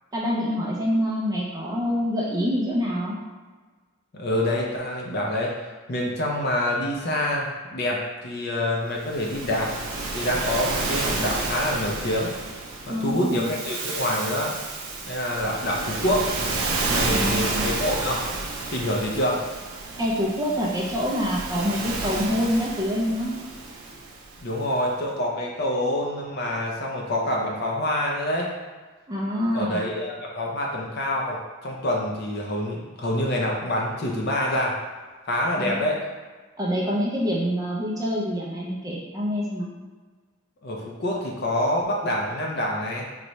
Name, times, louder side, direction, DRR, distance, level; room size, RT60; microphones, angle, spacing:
voice 1, 0.1-3.1 12.9-13.5 17.1-17.7 20.0-23.3 29.1-29.8 35.5-35.8 36.6-39.7, equal, 15° right, -4 dB, 0.4 m, -26 dB
voice 2, 4.1-5.5 5.9-9.8 10.1-12.3 12.9-14.5 15.1-16.3 16.8-18.2 18.7-19.4 24.4-28.5 29.5-34.8 35.3-36.0 40.6-43.0, left 1 dB, 45° left, -1 dB, 0.5 m, -26 dB
Waves surf, 9.0-24.5, right 3 dB, 75° right, 0.5 m, -30 dB
4.0 x 2.2 x 3.0 m, 1.4 s
head